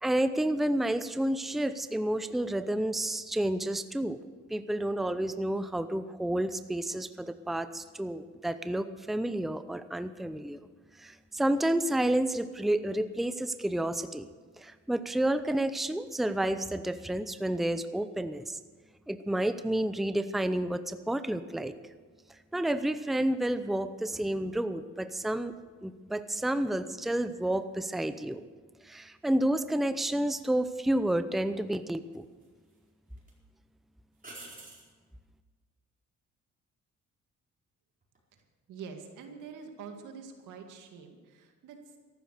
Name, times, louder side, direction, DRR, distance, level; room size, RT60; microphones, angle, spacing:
voice 1, 0.0-4.2 4.5-10.6 11.0-14.3 14.6-18.6 19.1-21.7 22.5-25.5 25.8-28.4 28.8-32.3, right 1 dB, ahead, 11 dB, 0.7 m, -30 dB
sound 1, 30.8-31.0 32.1-32.8 33.2-33.3 34.2-34.9 38.0-38.4, right 2 dB, 25° right, 4.5 m, -48 dB
voice 2, 38.3-42.0, right 6 dB, 85° right, 4 dB, 2.1 m, -46 dB
14.0 x 12.0 x 6.6 m, 1.5 s
cardioid pair, 90°, 30 cm